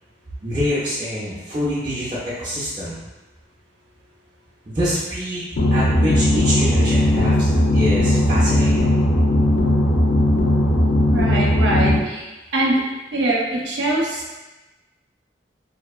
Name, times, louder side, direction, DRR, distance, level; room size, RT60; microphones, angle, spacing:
voice 1, 0.4-3.0 4.7-9.1, equal, 25° right, -10 dB, 0.5 m, -26 dB
Electronic Pounding Sound mono, 5.6-12.0, left 1 dB, 75° left, 0.4 m, -17 dB
voice 2, 11.1-12.8 13.1-14.4, right 1 dB, 75° right, -4 dB, 0.6 m, -23 dB
2.6 x 2.2 x 2.3 m, 1.1 s
head